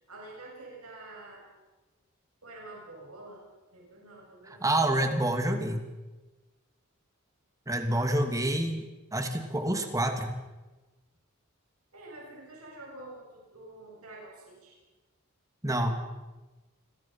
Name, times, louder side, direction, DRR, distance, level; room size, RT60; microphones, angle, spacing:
voice 1, 0.1-1.5 2.4-3.4 3.7-4.6 7.8-8.1 11.9-14.8, right 2 dB, 80° right, -2 dB, 7.6 m, -47 dB
voice 2, 4.5-5.8 7.7-8.8 9.1-10.3 15.6-16.0, right 1 dB, 15° right, 6 dB, 2.7 m, -27 dB
29.0 x 21.5 x 5.9 m, 1.2 s
head